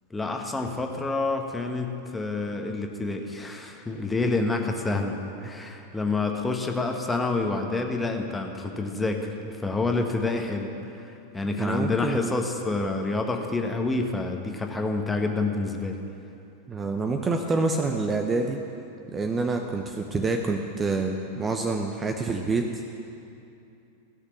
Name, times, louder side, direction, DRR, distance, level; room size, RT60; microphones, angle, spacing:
voice 1, 0.1-10.9 11.3-16.0, left 3 dB, 10° left, 3 dB, 1.3 m, -28 dB
voice 2, 11.6-12.4 16.7-18.6 19.1-22.8, right 3 dB, 20° right, 4 dB, 0.8 m, -27 dB
16.0 x 6.6 x 8.6 m, 2.7 s
figure-of-eight pair, 90°, 0 cm